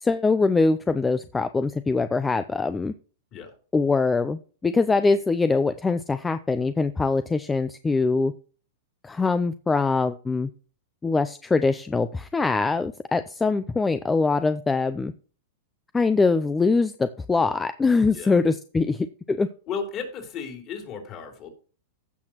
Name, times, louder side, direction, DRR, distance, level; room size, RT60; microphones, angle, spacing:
voice 1, 0.0-2.9 3.7-8.3 9.0-10.5 11.0-15.1 15.9-19.5, left 4 dB, 10° left, 12 dB, 0.4 m, -23 dB
voice 2, 19.7-21.5, left 6 dB, 35° left, 3 dB, 3.3 m, -34 dB
15.5 x 5.8 x 2.9 m, 0.39 s
hypercardioid pair, 135°, 0 cm